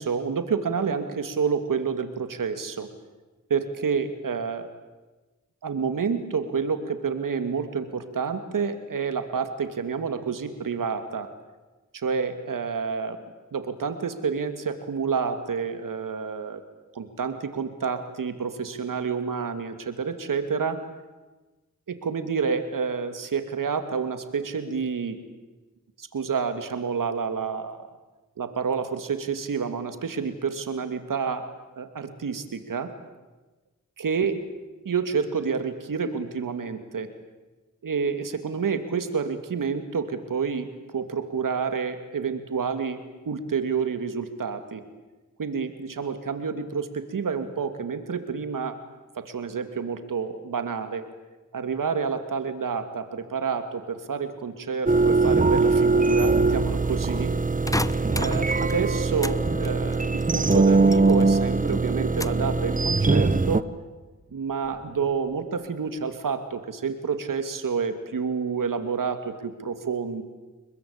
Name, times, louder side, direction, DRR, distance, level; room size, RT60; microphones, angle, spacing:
voice 1, 0.0-2.9 3.5-4.7 5.6-11.3 11.9-13.2 13.5-16.6 16.9-20.8 21.9-25.2 26.0-27.9 28.4-31.5 31.8-32.9 34.0-34.4 34.8-37.1 37.8-40.7 40.9-44.8 45.4-48.8 49.1-51.1 51.5-57.3 58.1-63.6 64.3-70.2, right 5 dB, 85° right, 9 dB, 2.6 m, -29 dB
sound 1, 54.9-63.6, right 3 dB, 25° right, 1.1 m, -21 dB
sound 2, 57.7-59.4 59.6-61.4 61.7-62.5 63.0-63.5, left 1 dB, 10° left, 0.9 m, -32 dB
Animal, 59.2-66.3, left 1 dB, 30° left, 4.2 m, -45 dB
30.0 x 22.0 x 8.9 m, 1.2 s
cardioid pair, 60°, 32 cm